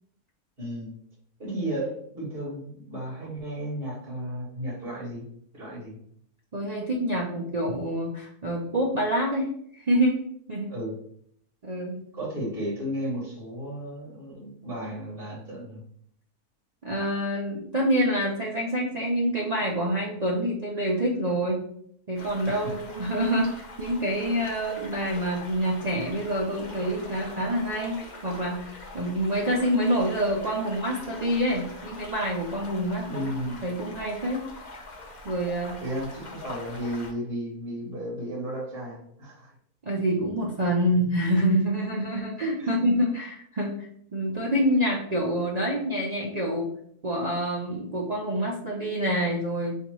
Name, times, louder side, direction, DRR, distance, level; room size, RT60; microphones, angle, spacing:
voice 1, 0.6-0.9 1.4-5.2 5.5-6.0 10.7-10.9 12.1-15.8 22.4-22.8 33.0-33.6 35.8-39.5 42.6-42.8, equal, 40° right, -8 dB, 2.3 m, -34 dB
voice 2, 6.5-10.2 10.5-10.7 11.6-12.0 16.8-21.6 22.1-28.0 28.2-33.2 33.6-34.4 35.2-35.8 39.8-46.7 47.0-49.8, equal, 65° right, -3 dB, 0.4 m, -27 dB
sound 1, 22.2-37.1, left 2 dB, 35° left, 0.9 m, -43 dB
4.1 x 4.0 x 3.0 m, 0.67 s
omnidirectional pair, 1.6 m